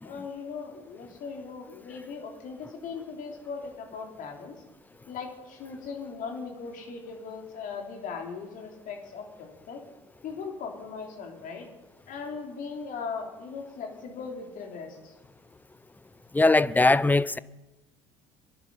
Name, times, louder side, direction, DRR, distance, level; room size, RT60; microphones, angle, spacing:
voice 1, 0.0-4.5 5.1-9.8 10.2-11.7 12.1-15.1, left 5 dB, 50° left, 3.6 m, -39 dB
voice 2, 16.3-17.4, left 2 dB, 10° left, 0.6 m, -21 dB
23.0 x 11.0 x 5.6 m
hypercardioid pair, 65°, 17 cm